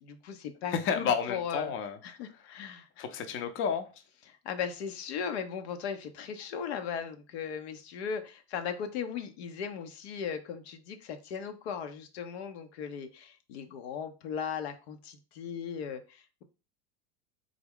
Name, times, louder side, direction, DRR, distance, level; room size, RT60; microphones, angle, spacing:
voice 1, 0.0-1.7 2.0-3.0 4.3-16.4, left 7 dB, 75° left, 0.6 m, -37 dB
voice 2, 0.7-2.0 3.0-3.9, left 7 dB, 40° left, 0.6 m, -30 dB
3.6 x 2.1 x 3.5 m
hypercardioid pair, 105°, 32 cm